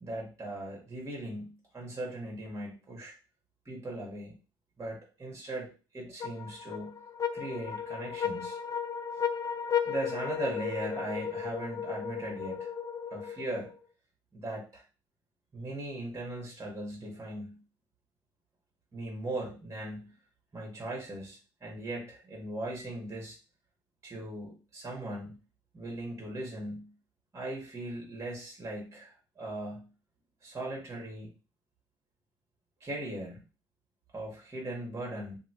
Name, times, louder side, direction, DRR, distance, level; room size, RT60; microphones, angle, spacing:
voice 1, 0.0-3.2 3.6-4.3 4.8-7.0 7.3-8.6 9.8-12.7 13.1-13.7 14.3-14.8 15.5-17.6 18.9-20.1 20.5-23.4 24.0-25.4 25.7-26.9 27.3-29.9 30.4-31.3 32.8-33.4 34.1-35.4, right 1 dB, 25° right, -1 dB, 1.4 m, -39 dB
sound 1, 6.2-13.8, left 7 dB, 35° left, 0.4 m, -35 dB
2.7 x 2.7 x 2.9 m, 0.33 s
supercardioid pair, 65°, 11 cm